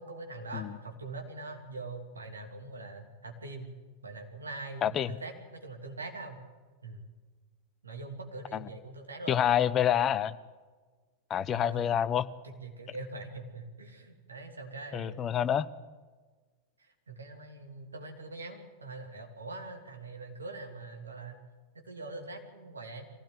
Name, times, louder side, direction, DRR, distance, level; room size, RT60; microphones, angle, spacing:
voice 1, 0.0-3.7 4.0-6.4 6.8-7.0 7.8-9.4 11.5-11.9 12.4-15.2 16.8-21.4 21.8-23.1, right 2 dB, 75° right, 3 dB, 3.0 m, -43 dB
voice 2, 9.3-10.4 11.3-12.3 14.9-15.7, left 10 dB, 25° left, 15 dB, 0.9 m, -27 dB
23.5 x 16.0 x 7.8 m, 1.4 s
figure-of-eight pair, 90°, 0 cm